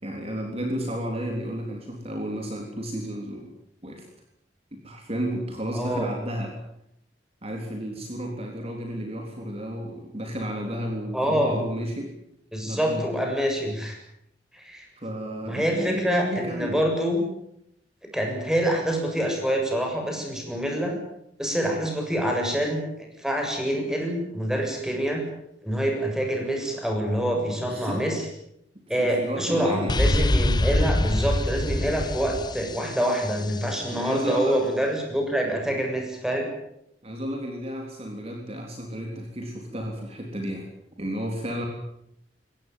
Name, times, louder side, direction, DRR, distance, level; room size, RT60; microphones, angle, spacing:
voice 1, 0.0-3.5 3.8-4.1 4.8-6.5 7.4-12.1 12.7-13.1 15.0-16.8 27.6-28.1 29.0-30.0 33.9-34.6 37.0-40.7 41.0-41.7, equal, 35° right, 2 dB, 3.6 m, -32 dB
voice 2, 5.7-6.1 11.1-11.6 12.5-14.0 14.5-14.9 15.4-17.2 18.1-21.0 21.4-22.8 23.2-25.2 25.6-28.3 28.9-36.5, equal, 5° right, 1 dB, 7.4 m, -26 dB
sound 1, 29.9-33.6, left 1 dB, 25° left, 0.9 m, -24 dB
23.5 x 18.0 x 9.3 m, 0.78 s
head